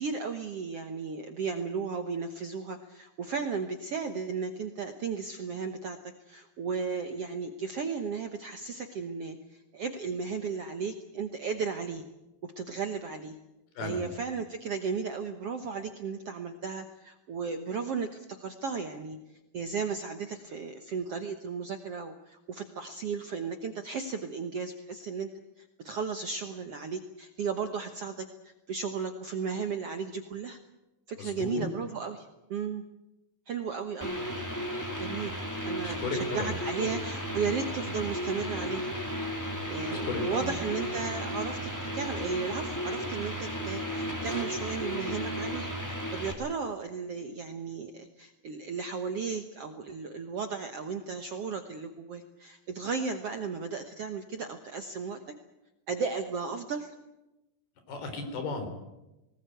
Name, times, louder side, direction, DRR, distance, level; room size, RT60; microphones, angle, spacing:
voice 1, 0.0-12.0 12.6-13.3 13.8-19.2 19.5-25.3 25.6-30.6 31.1-32.8 33.5-34.2 35.0-35.4 35.6-38.9 39.7-55.3 55.9-56.9, right 5 dB, 70° right, 6 dB, 1.4 m, -35 dB
voice 2, 31.2-31.7 35.8-36.9 39.9-40.6 57.9-58.7, left 4 dB, 85° left, 7 dB, 5.5 m, -35 dB
sound 1, 34.0-46.3, equal, 5° left, 2.4 m, -34 dB
19.5 x 19.0 x 9.2 m, 0.98 s
omnidirectional pair, 4.4 m